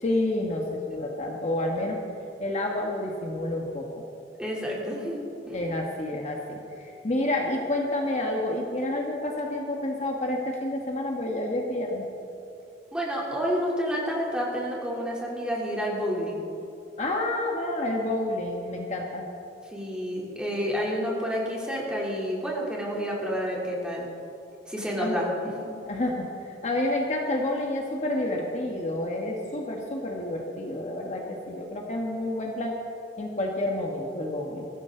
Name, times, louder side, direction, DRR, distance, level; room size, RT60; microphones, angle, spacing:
voice 1, 0.0-2.0 2.4-4.0 5.5-12.0 17.0-19.2 25.0-25.1 25.8-32.8 33.2-34.7, left 1 dB, 40° left, 0 dB, 1.6 m, -29 dB
voice 2, 4.4-5.6 12.9-16.4 19.7-24.1 24.7-25.7, equal, 5° right, -4 dB, 3.2 m, -29 dB
22.0 x 14.5 x 3.9 m, 2.7 s
head